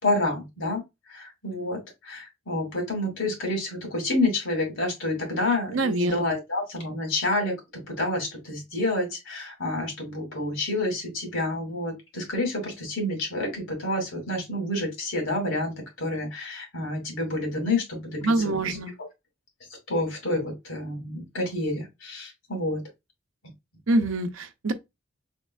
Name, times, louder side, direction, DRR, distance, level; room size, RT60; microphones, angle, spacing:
voice 1, 0.0-0.8 1.1-7.6 7.9-18.8 19.9-22.8, left 2 dB, 80° left, 2.5 m, -29 dB
voice 2, 5.7-6.1 18.2-18.9 23.9-24.7, right 2 dB, 80° right, 0.7 m, -24 dB
4.3 x 4.2 x 2.3 m
head